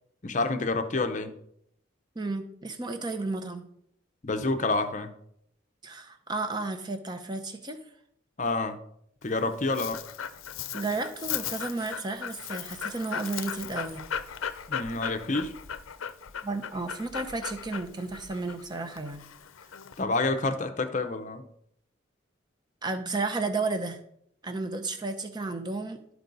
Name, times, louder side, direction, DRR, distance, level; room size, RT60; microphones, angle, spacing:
voice 1, 0.2-1.3 4.2-5.1 8.4-8.8 9.2-10.0 14.7-15.5 20.0-21.4, left 3 dB, 35° left, 8 dB, 0.6 m, -28 dB
voice 2, 2.1-3.7 5.8-7.8 10.7-14.0 16.4-19.2 22.8-24.0 24.4-26.0, right 3 dB, 20° right, 7 dB, 0.7 m, -33 dB
Dog, 9.2-20.0, left 8 dB, 80° left, 0.5 m, -37 dB
12.0 x 4.6 x 4.0 m, 0.71 s
head